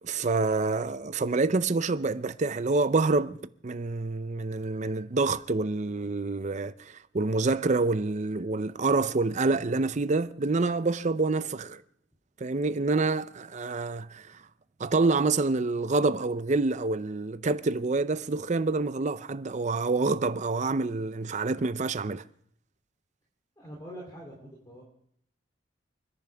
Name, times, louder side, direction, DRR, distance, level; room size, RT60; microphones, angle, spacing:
voice 1, 0.0-3.4 3.6-11.8 12.4-14.4 14.8-22.2, right 3 dB, 40° right, 0.5 m, -27 dB
voice 2, 23.6-24.8, equal, 20° left, 3.1 m, -44 dB
29.0 x 10.5 x 3.4 m
head